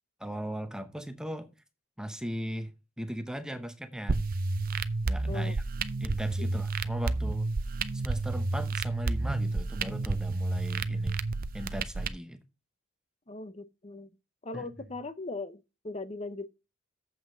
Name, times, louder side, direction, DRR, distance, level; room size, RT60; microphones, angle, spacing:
voice 1, 0.2-1.5 2.0-2.7 3.0-4.2 5.0-5.6 6.0-7.5 7.9-11.2 11.5-12.4 14.5-14.7, equal, 5° right, 0.8 m, -38 dB
sound 1, 4.1-12.1, right 3 dB, 40° right, 0.5 m, -30 dB
voice 2, 13.3-14.1 14.4-16.5, left 3 dB, 30° left, 0.8 m, -39 dB
7.7 x 5.7 x 6.2 m
head